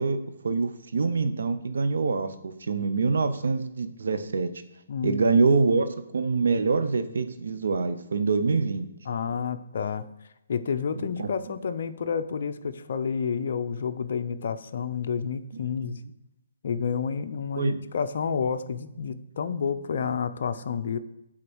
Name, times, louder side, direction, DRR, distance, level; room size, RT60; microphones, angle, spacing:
voice 1, 0.0-4.5 5.0-8.9 11.0-11.6 17.6-17.8, right 4 dB, 75° right, 10 dB, 0.8 m, -25 dB
voice 2, 4.9-5.2 9.1-10.0 10.5-16.0 16.6-21.0, left 6 dB, 55° left, 7 dB, 0.6 m, -30 dB
8.7 x 3.9 x 6.3 m, 0.89 s
hypercardioid pair, 155°, 0 cm